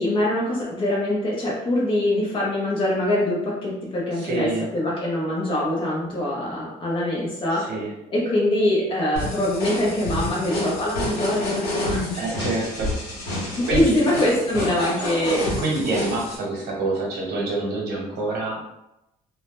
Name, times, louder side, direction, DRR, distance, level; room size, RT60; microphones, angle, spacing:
voice 1, 0.0-7.7 8.1-12.2 13.4-15.6, left 1 dB, 30° left, -5 dB, 0.6 m, -24 dB
voice 2, 4.1-4.7 7.5-7.9 12.1-13.0 13.3-14.0 15.6-18.6, right 2 dB, 75° right, -2 dB, 0.9 m, -27 dB
sound 1, 9.2-16.4, left 1 dB, 75° left, 0.9 m, -28 dB
2.1 x 2.0 x 2.9 m, 0.88 s
cardioid pair, 110°, 17 cm